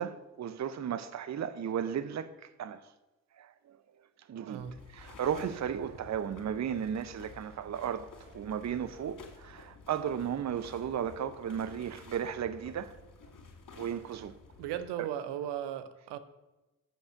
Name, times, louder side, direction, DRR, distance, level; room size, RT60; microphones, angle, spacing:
voice 1, 0.0-2.8 3.4-3.8 4.3-4.6 4.9-12.9 13.8-14.4 15.0-15.1, right 8 dB, 40° right, 0.7 m, -35 dB
sound 1, 4.6-14.8, left 4 dB, 50° left, 2.2 m, -52 dB
voice 2, 14.6-16.2, right 10 dB, 75° right, 0.8 m, -36 dB
7.0 x 6.5 x 6.3 m
hypercardioid pair, 40°, 42 cm